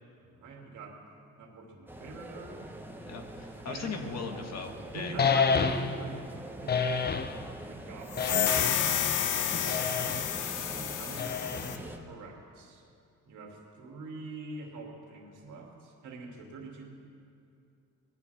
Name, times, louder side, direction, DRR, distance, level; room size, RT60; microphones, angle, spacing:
voice 1, 0.2-1.0 1.4-2.7 3.6-4.1 4.9-7.2 7.5-9.0 9.5-10.0 10.6-12.8 13.3-16.9, right 3 dB, 80° right, 0 dB, 2.6 m, -45 dB
sound 1, 1.9-12.0, right 1 dB, 5° right, 1.2 m, -45 dB
voice 2, 3.1-5.2 9.5-9.9 10.6-10.7, left 4 dB, 60° left, 4 dB, 1.6 m, -39 dB
sound 2, 5.2-6.1 6.7-7.4 8.2-8.9 9.7-10.3 11.2-11.9, left 5 dB, 35° left, 0.8 m, -28 dB
sound 3, 8.1-11.8, left 9 dB, 85° left, 0.9 m, -30 dB
19.0 x 15.0 x 3.5 m, 2.5 s
cardioid pair, 90°, 30 cm